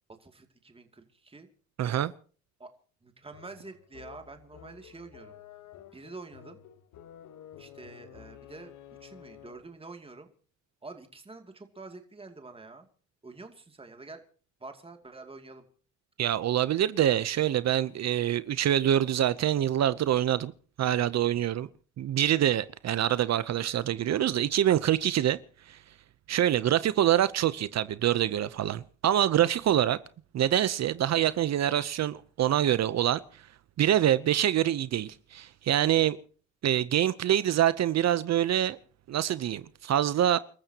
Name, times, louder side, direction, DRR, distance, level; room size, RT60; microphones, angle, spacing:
voice 1, 0.2-1.5 2.6-2.7 3.0-5.4 5.9-6.6 7.6-8.7 9.0-10.3 10.8-12.9 13.2-14.2 14.6-15.6, right 3 dB, 20° right, 2.6 m, -47 dB
voice 2, 1.8-2.1 16.2-20.5 20.8-21.7 22.0-25.4 25.6-25.8 26.3-30.0 30.3-33.5 33.8-36.2 36.6-38.8 39.1-40.4, right 11 dB, 60° right, 0.8 m, -25 dB
sound 1, 3.3-9.8, left 10 dB, 70° left, 1.4 m, -51 dB
29.5 x 14.0 x 2.9 m
cardioid pair, 90°, 30 cm